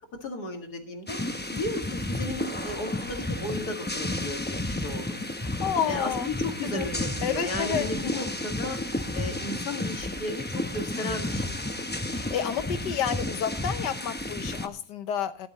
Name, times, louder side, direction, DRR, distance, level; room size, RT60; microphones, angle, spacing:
voice 1, 0.2-1.2 1.5-5.2 5.9-8.8 9.1-10.4 10.7-11.7, left 2 dB, 65° left, 4 dB, 2.5 m, -35 dB
sound 1, 1.1-14.7, left 1 dB, 15° left, 0.4 m, -32 dB
voice 2, 5.4-6.3 6.6-6.9 7.2-8.3 12.1-15.5, left 8 dB, 80° left, 11 dB, 1.6 m, -30 dB
16.5 x 11.5 x 3.0 m, 0.40 s
omnidirectional pair, 1.8 m